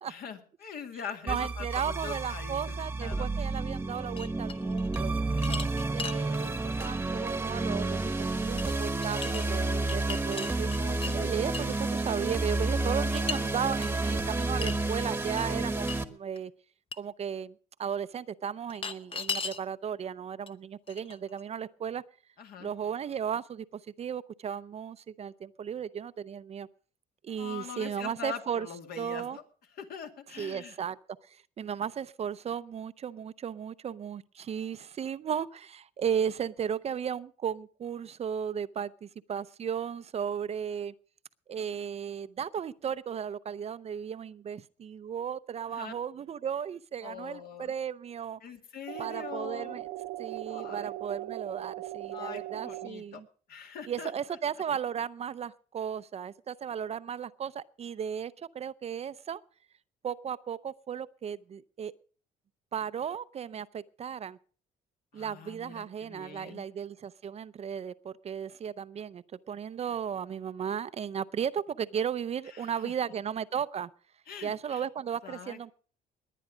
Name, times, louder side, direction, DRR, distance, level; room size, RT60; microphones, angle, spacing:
voice 1, 0.1-3.3 5.3-5.7 22.4-22.7 27.4-29.4 29.8-30.8 45.7-45.9 47.0-47.7 48.4-49.8 50.5-50.9 52.1-53.2 53.5-54.1 65.1-66.7 72.5-72.9 74.3-74.8 75.2-75.7, left 7 dB, 65° left, 2.3 m, -43 dB
sound 1, 1.3-16.0, right 2 dB, 10° right, 1.2 m, -30 dB
voice 2, 1.3-5.2 5.9-16.5 17.0-22.0 22.6-26.7 27.2-28.7 28.9-29.4 30.4-31.0 31.2-40.9 41.5-48.4 49.0-49.9 50.2-53.3 53.8-59.4 60.0-61.9 62.7-64.4 65.1-73.9 74.4-75.7, right 8 dB, 40° right, 0.6 m, -35 dB
sound 2, 4.2-5.0 5.4-6.2 6.8-7.0 8.6-8.7 9.0-9.4 9.8-11.1 11.5-11.8 13.1-13.4 13.8-13.9 14.6-14.9 15.4-15.5 15.9-16.0 16.4-16.5 16.9-17.0 18.7-19.6 20.5-20.6 20.9-21.4, left 5 dB, 30° left, 1.0 m, -37 dB
sound 3, 48.9-52.9, right 16 dB, 70° right, 0.9 m, -39 dB
20.5 x 9.3 x 5.0 m
cardioid pair, 110°, 17 cm